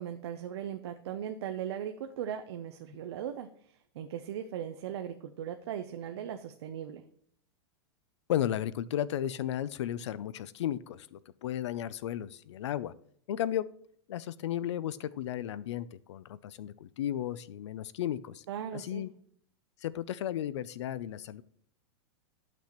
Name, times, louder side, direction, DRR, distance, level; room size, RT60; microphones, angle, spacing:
voice 1, 0.0-3.5 4.0-7.0 18.5-19.1, right 9 dB, 70° right, 7 dB, 0.5 m, -38 dB
voice 2, 8.3-12.9 13.3-13.7 14.1-18.4 18.7-19.1 19.8-21.4, left 11 dB, 85° left, 19 dB, 0.4 m, -34 dB
11.5 x 6.0 x 2.9 m, 0.64 s
supercardioid pair, 170°, 14 cm